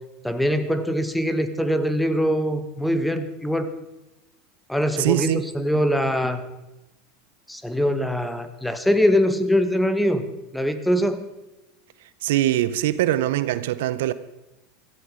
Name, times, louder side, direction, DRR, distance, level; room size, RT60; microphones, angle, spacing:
voice 1, 0.2-3.7 4.7-6.4 7.5-10.3 10.5-11.3, equal, 5° left, 1.6 m, -23 dB
voice 2, 5.0-5.5 12.2-14.1, right 13 dB, 70° right, 0.7 m, -22 dB
16.5 x 14.0 x 5.0 m
hypercardioid pair, 85°, 0 cm